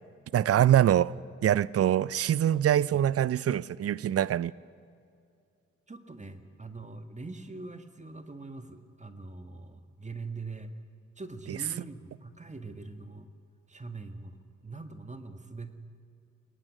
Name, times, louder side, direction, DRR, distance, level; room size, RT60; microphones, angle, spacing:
voice 1, 0.3-1.1 1.4-4.5, right 11 dB, 50° right, 0.5 m, -24 dB
voice 2, 5.9-10.7 11.2-13.3 13.7-15.8, right 3 dB, 20° right, 1.7 m, -43 dB
23.5 x 18.5 x 6.2 m
supercardioid pair, 50°, 31 cm